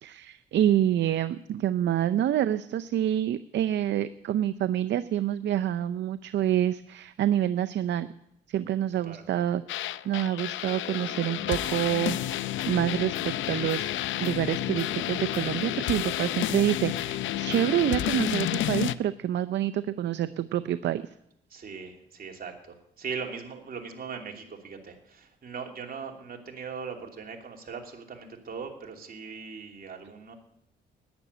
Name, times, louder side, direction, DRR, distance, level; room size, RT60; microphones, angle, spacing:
voice 1, 0.0-8.1 8.5-9.6 10.0-12.2 12.7-13.9 14.2-21.0, right 11 dB, 65° right, 12 dB, 0.6 m, -27 dB
sound 1, 9.7-18.9, left 13 dB, 75° left, 0.6 m, -30 dB
voice 2, 21.5-30.4, right 5 dB, 50° right, 2 dB, 2.8 m, -40 dB
11.5 x 10.0 x 9.5 m, 0.78 s
cardioid pair, 90°, 20 cm